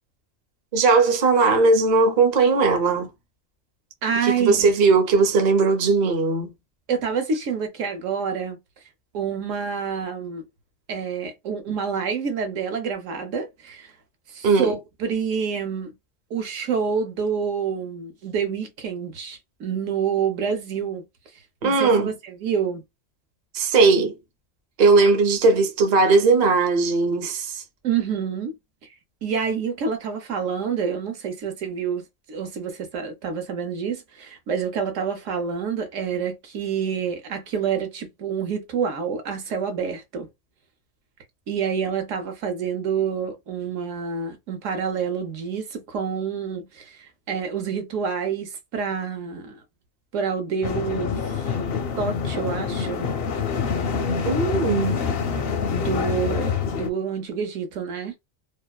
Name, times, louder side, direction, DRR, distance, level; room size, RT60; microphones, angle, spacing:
voice 1, 0.7-3.1 4.2-6.5 14.4-14.7 21.6-22.1 23.5-24.2 24.8-27.6 54.2-55.0, right 4 dB, 45° right, 0.6 m, -18 dB
voice 2, 4.0-4.7 6.9-8.6 9.1-10.4 10.9-13.9 14.3-15.9 16.3-21.0 21.6-22.8 27.8-28.5 29.2-32.0 32.3-40.3 41.5-49.6 50.1-51.4 52.0-53.1 55.7-58.1, right 6 dB, 75° right, 1.1 m, -27 dB
sound 1, 50.6-56.9, left 6 dB, 65° left, 0.6 m, -26 dB
2.7 x 2.3 x 2.2 m
omnidirectional pair, 1.3 m